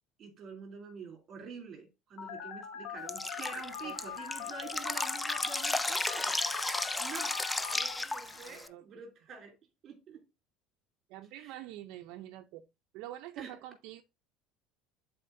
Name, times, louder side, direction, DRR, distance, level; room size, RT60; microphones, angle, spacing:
voice 1, 0.2-6.4 7.0-9.6 9.8-10.2 11.3-11.6 13.4-13.6, right 5 dB, 35° right, 2.9 m, -47 dB
Telephone, 2.2-8.0, left 8 dB, 60° left, 1.2 m, -42 dB
Drip, 3.1-8.7, left 2 dB, 10° left, 0.3 m, -34 dB
sound 1, 3.5-8.7, left 2 dB, 25° left, 2.8 m, -56 dB
voice 2, 3.8-4.2 4.5-4.6 8.5-8.9 11.1-12.7 12.9-14.0, right 14 dB, 65° right, 0.6 m, -46 dB
11.5 x 4.2 x 2.6 m
cardioid pair, 160°, 0 cm